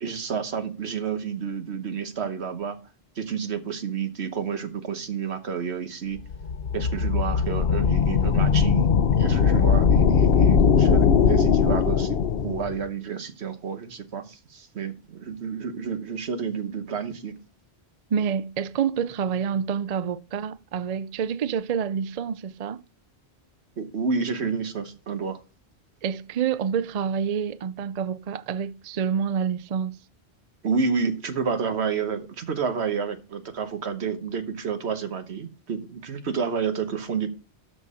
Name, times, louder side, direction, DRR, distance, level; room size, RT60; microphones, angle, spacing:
voice 1, 0.0-2.8 3.2-6.2 6.7-12.2 12.4-17.3 23.8-25.4 30.6-37.3, right 6 dB, 80° right, 1.3 m, -30 dB
sound 1, 6.2-12.7, left 6 dB, 65° left, 0.9 m, -20 dB
voice 2, 18.1-22.8 26.0-29.9, right 7 dB, 50° right, 0.5 m, -27 dB
12.5 x 4.3 x 4.9 m
omnidirectional pair, 1.1 m